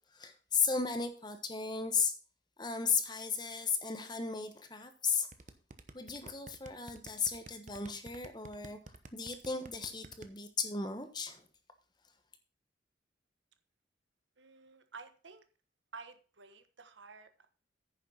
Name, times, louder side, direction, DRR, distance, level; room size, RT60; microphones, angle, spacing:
voice 1, 0.1-2.1 2.6-5.3 5.9-8.8 9.1-11.4, left 5 dB, 25° left, 8 dB, 1.1 m, -35 dB
sound 1, 5.3-10.3, right 2 dB, 40° right, 0.9 m, -50 dB
voice 2, 14.4-15.4 15.9-17.5, right 4 dB, 85° right, 9 dB, 1.3 m, -52 dB
9.8 x 6.7 x 5.5 m, 0.38 s
head